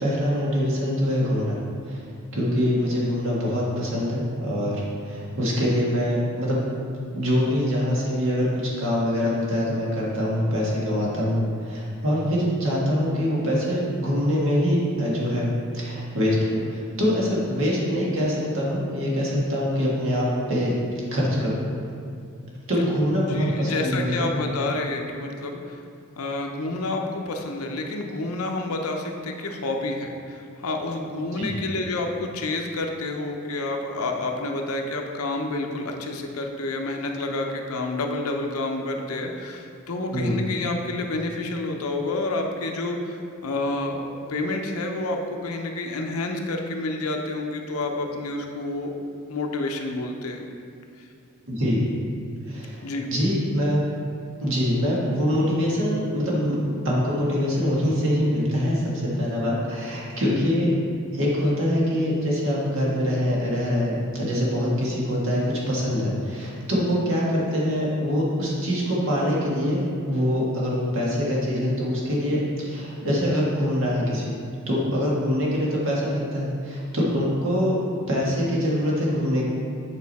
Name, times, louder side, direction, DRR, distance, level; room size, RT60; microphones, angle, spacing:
voice 1, 0.0-1.6 1.9-2.0 2.3-6.6 7.1-15.5 15.7-20.7 21.1-21.6 22.7-24.1 31.4-31.5 40.1-40.4 51.5-51.9 52.5-52.8 53.1-53.8 54.4-56.6 56.8-60.8 61.1-65.4 65.7-74.2 74.7-77.7 78.1-79.5, equal, 60° right, -5 dB, 1.8 m, -24 dB
voice 2, 23.3-25.8 26.2-48.9 49.3-50.5 52.8-53.1, left 2 dB, 85° left, 2 dB, 0.8 m, -29 dB
8.4 x 5.0 x 4.2 m, 2.4 s
head